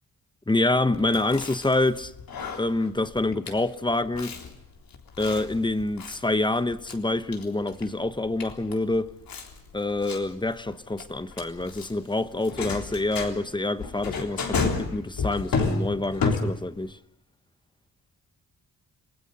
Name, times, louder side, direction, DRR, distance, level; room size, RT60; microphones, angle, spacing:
voice 1, 0.5-2.1 2.6-4.3 5.2-9.1 9.7-17.0, left 2 dB, 15° left, 1.0 m, -26 dB
Chewing mastication, 0.9-16.9, left 4 dB, 85° left, 3.7 m, -33 dB
30.0 x 21.5 x 5.5 m
wide cardioid pair, 120°, 34 cm